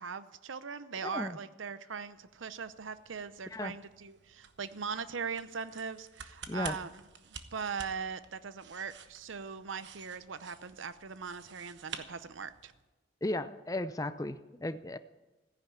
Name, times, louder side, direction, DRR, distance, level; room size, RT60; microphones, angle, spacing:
voice 1, 0.0-6.9 7.3-12.7, right 6 dB, 90° right, 13 dB, 0.7 m, -40 dB
voice 2, 1.0-1.4 3.5-3.7 6.5-6.8 13.2-15.0, left 1 dB, 20° left, 11 dB, 0.5 m, -35 dB
sound 1, 2.1-12.8, right 7 dB, 70° right, 1.1 m, -51 dB
14.5 x 10.0 x 8.2 m, 1.1 s
head